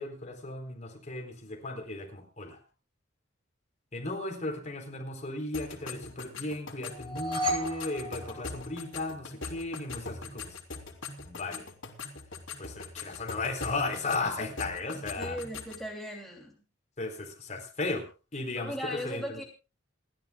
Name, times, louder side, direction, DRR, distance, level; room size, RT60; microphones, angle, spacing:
voice 1, 0.0-2.6 3.9-10.6 11.2-11.7 12.6-15.4 17.0-18.7 19.0-19.4, left 2 dB, 35° left, 3 dB, 4.1 m, -35 dB
sound 1, 5.5-15.9, left 4 dB, 85° left, 3.2 m, -42 dB
sound 2, 6.9-9.2, equal, 25° right, 5.6 m, -34 dB
voice 2, 15.2-16.6 18.6-19.4, equal, ahead, -1 dB, 3.0 m, -38 dB
29.0 x 12.0 x 2.4 m, 0.31 s
head